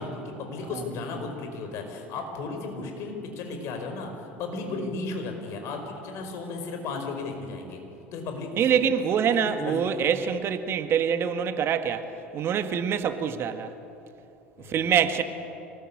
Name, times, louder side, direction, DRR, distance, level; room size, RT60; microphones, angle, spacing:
voice 1, 0.0-7.8 8.1-8.8 9.3-9.9 14.6-15.0, left 3 dB, 50° left, 5.2 m, -35 dB
voice 2, 8.6-12.1 12.3-13.7 14.7-15.2, right 8 dB, 40° right, 1.6 m, -25 dB
25.5 x 19.5 x 8.7 m
figure-of-eight pair, 70°, 6 cm